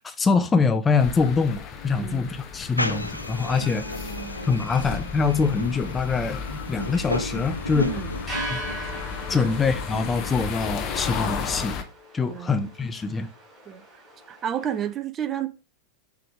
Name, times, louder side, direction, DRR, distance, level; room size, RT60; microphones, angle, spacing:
voice 1, 0.0-3.9 4.5-7.9 8.5-8.6 9.3-11.8 12.1-13.3, left 4 dB, 15° left, 0.5 m, -24 dB
sound 1, 1.0-11.8, left 6 dB, 35° left, 0.9 m, -34 dB
sound 2, 1.5-14.9, right 2 dB, 5° right, 3.2 m, -43 dB
voice 2, 1.9-2.3 3.5-4.5 7.7-8.2 9.3-9.5 12.3-12.5 13.7-13.8 14.3-15.5, right 9 dB, 25° right, 0.6 m, -32 dB
sound 3, 2.8-10.7, left 1 dB, 85° left, 0.4 m, -34 dB
5.8 x 3.5 x 4.7 m
figure-of-eight pair, 90°, 0 cm